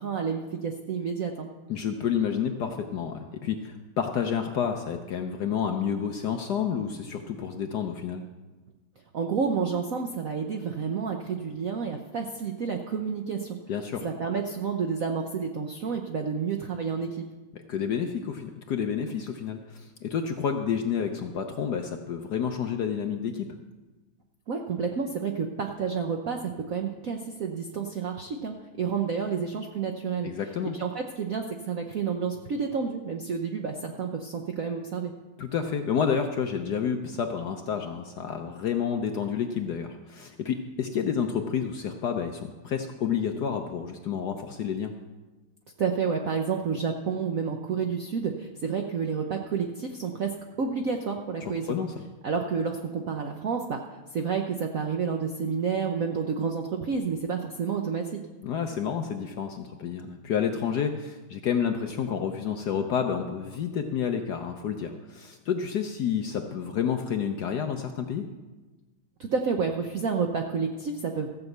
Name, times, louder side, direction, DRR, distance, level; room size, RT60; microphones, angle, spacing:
voice 1, 0.0-1.5 9.1-13.6 14.0-17.3 24.5-30.3 30.7-35.1 45.8-51.8 52.2-53.8 54.1-58.3 69.2-71.3, right 6 dB, 70° right, 3 dB, 0.8 m, -30 dB
voice 2, 1.7-8.2 13.7-14.0 17.7-23.6 30.2-30.7 35.4-44.9 51.4-51.9 58.4-68.3, left 7 dB, 65° left, 5 dB, 1.0 m, -29 dB
15.0 x 6.0 x 7.9 m, 1.2 s
omnidirectional pair, 2.4 m